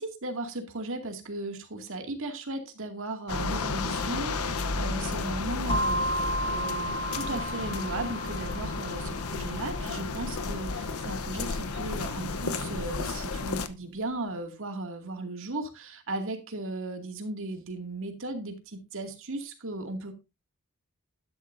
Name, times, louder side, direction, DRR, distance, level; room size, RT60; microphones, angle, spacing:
voice 1, 0.0-20.1, right 2 dB, 65° right, 4 dB, 2.3 m, -36 dB
sound 1, 3.3-13.7, left 3 dB, 75° left, 0.9 m, -32 dB
sound 2, 5.7-13.5, right 1 dB, 25° left, 0.9 m, -35 dB
12.5 x 11.0 x 2.7 m, 0.26 s
head